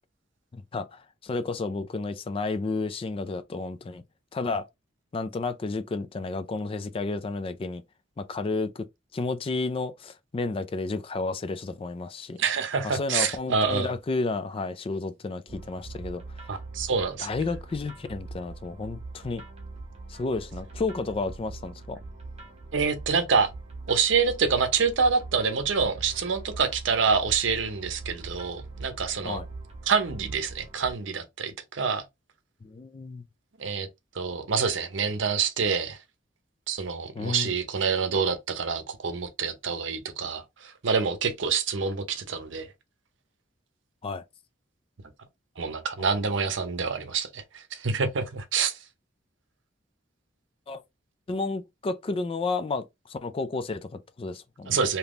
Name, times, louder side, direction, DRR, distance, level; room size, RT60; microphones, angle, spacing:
voice 1, 0.5-4.0 4.3-4.7 5.1-7.8 8.2-8.9 9.1-12.4 12.8-16.2 17.2-19.4 20.1-22.0 29.2-29.5 32.6-33.2 37.1-37.5 44.0-44.2 46.0-46.1 50.7-50.8 51.3-54.9, left 3 dB, 30° left, 0.3 m, -31 dB
voice 2, 12.4-13.9 16.5-17.3 22.7-23.5 23.9-29.4 29.9-32.0 33.6-33.9 34.1-36.0 36.7-42.7 45.6-48.8 54.7-55.0, right 5 dB, 75° right, 0.7 m, -27 dB
sound 1, 15.5-30.9, right 3 dB, 35° right, 0.9 m, -42 dB
3.5 x 2.8 x 2.4 m
head